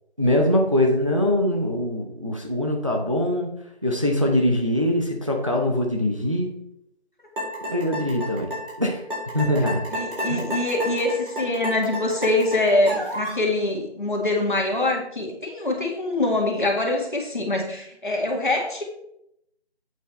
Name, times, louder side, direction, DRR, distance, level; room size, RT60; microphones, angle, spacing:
voice 1, 0.2-3.5 3.8-6.6 7.7-8.5 8.8-9.0 9.3-9.8 10.3-10.4, left 1 dB, 30° right, 1 dB, 0.8 m, -22 dB
sound 1, 7.4-13.4, equal, 50° right, 3.7 m, -31 dB
voice 2, 9.9-18.8, left 2 dB, 50° left, 0 dB, 2.2 m, -24 dB
8.3 x 7.8 x 3.4 m, 0.77 s
figure-of-eight pair, 175°, 33 cm